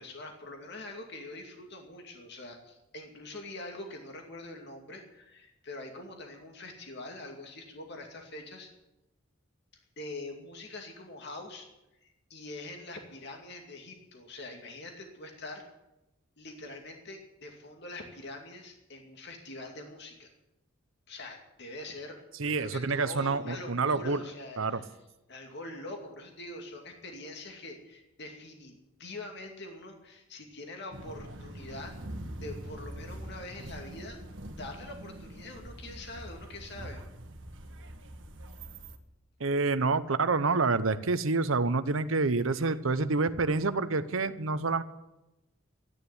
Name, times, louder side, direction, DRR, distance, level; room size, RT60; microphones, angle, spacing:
voice 1, 0.0-8.7 10.0-11.7 12.0-15.6 16.4-20.3 21.1-24.9 25.3-31.9 32.4-34.2 34.6-37.0, left 2 dB, 55° left, 3 dB, 2.4 m, -44 dB
voice 2, 22.4-24.2 24.6-24.8 39.4-44.8, right 3 dB, 85° right, 13 dB, 0.9 m, -28 dB
sound 1, 30.9-39.0, right 1 dB, 65° right, 1.6 m, -44 dB
13.5 x 9.9 x 9.5 m, 0.94 s
head